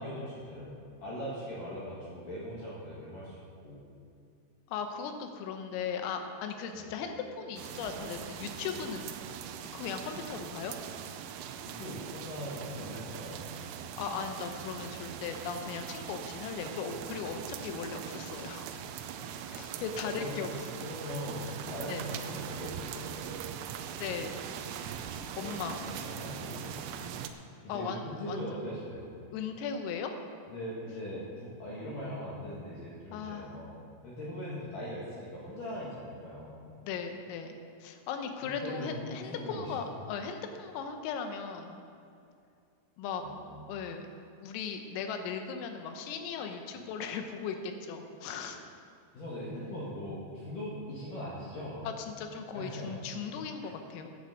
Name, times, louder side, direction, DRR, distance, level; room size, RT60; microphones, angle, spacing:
voice 1, 0.0-3.4 3.6-3.8 6.7-6.9 11.7-13.4 15.7-15.8 19.3-19.7 20.0-23.3 25.3-26.8 27.6-29.1 30.5-36.8 38.4-39.7 43.2-43.8 49.1-51.9 52.5-52.9 53.6-53.7, equal, 55° left, -7 dB, 2.9 m, -41 dB
voice 2, 4.7-9.1 9.5-10.8 14.0-18.7 18.9-19.1 19.5-20.5 21.9-22.0 24.0-24.4 25.4-25.8 27.7-28.6 29.3-30.1 33.1-33.6 36.8-41.9 43.0-43.2 43.7-44.1 44.4-48.6 51.9-54.1, left 6 dB, 85° left, 6 dB, 3.7 m, -38 dB
sound 1, 7.6-27.3, right 8 dB, 85° right, 3.2 m, -41 dB
10.5 x 9.0 x 7.8 m, 2.5 s
omnidirectional pair, 5.8 m